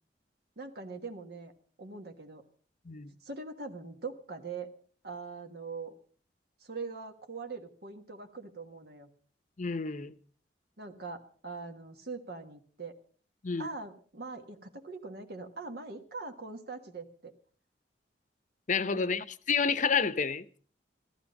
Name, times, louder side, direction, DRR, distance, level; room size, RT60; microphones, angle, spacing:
voice 1, 0.6-1.5 1.8-2.4 3.2-4.7 5.0-5.9 6.6-9.1 10.8-13.0 13.6-17.3 18.9-19.0, right 4 dB, 65° right, 1.5 m, -42 dB
voice 2, 9.6-10.1 13.4-13.7 18.7-20.6, left 5 dB, 45° left, 0.8 m, -29 dB
15.5 x 13.5 x 5.3 m
head